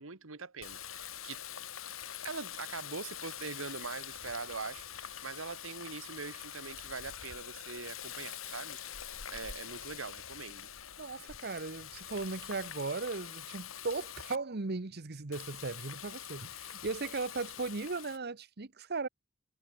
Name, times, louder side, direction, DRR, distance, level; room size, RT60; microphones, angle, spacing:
voice 1, 0.0-1.4 2.2-8.8 9.3-10.7, right 4 dB, 75° right, 1.5 m, -43 dB
Water tap faucet, 0.6-14.4 15.3-18.2, left 10 dB, 80° left, 2.5 m, -45 dB
voice 2, 11.0-19.1, right 3 dB, 50° right, 1.1 m, -37 dB
head